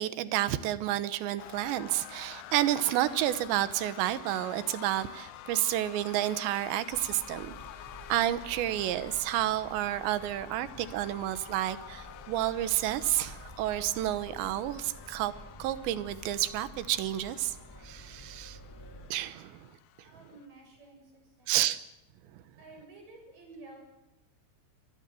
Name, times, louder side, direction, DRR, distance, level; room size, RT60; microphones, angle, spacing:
voice 1, 0.0-7.5 8.1-15.3 15.6-17.6 17.8-18.6 19.1-19.7 21.5-21.8, right 13 dB, 85° right, 14 dB, 3.3 m, -30 dB
sound 1, 1.4-20.5, left 12 dB, 70° left, 2.3 m, -49 dB
sound 2, 6.9-19.1, equal, 5° left, 3.7 m, -50 dB
voice 2, 20.0-21.6 22.6-23.8, right 2 dB, 50° right, 2 dB, 8.9 m, -52 dB
25.5 x 20.0 x 7.7 m, 0.94 s
omnidirectional pair, 5.0 m